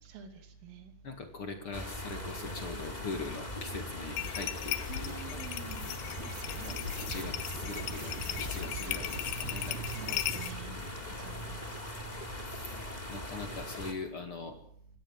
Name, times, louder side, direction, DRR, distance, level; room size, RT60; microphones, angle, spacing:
voice 1, 1.0-5.4 6.6-10.2 10.6-10.9 12.5-12.7 13.1-14.5, left 3 dB, 55° left, 5 dB, 1.4 m, -42 dB
sound 1, 1.7-13.9, left 1 dB, 10° left, 2.4 m, -40 dB
sound 2, 4.2-10.5, left 14 dB, 80° left, 2.4 m, -38 dB
voice 2, 4.9-5.9 9.9-10.8 11.0-11.6, right 9 dB, 75° right, 5 dB, 5.4 m, -47 dB
sound 3, 6.2-10.6, right 5 dB, 55° right, 3.8 m, -44 dB
26.0 x 17.0 x 7.5 m, 0.64 s
omnidirectional pair, 5.9 m